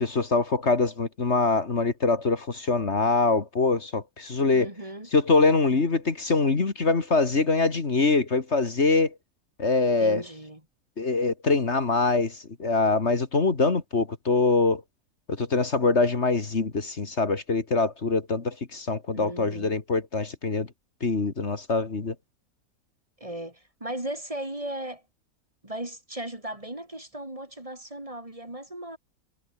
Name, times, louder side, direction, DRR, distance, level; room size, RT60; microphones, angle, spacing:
voice 1, 0.0-4.7 5.1-9.1 9.6-10.2 11.0-14.8 15.3-20.7 21.0-22.1, left 3 dB, 50° left, 2.4 m, -24 dB
voice 2, 4.5-5.1 10.0-10.6 19.1-19.8 23.2-25.0 25.6-29.0, right 1 dB, 25° right, 3.0 m, -36 dB
omnidirectional pair, 1.5 m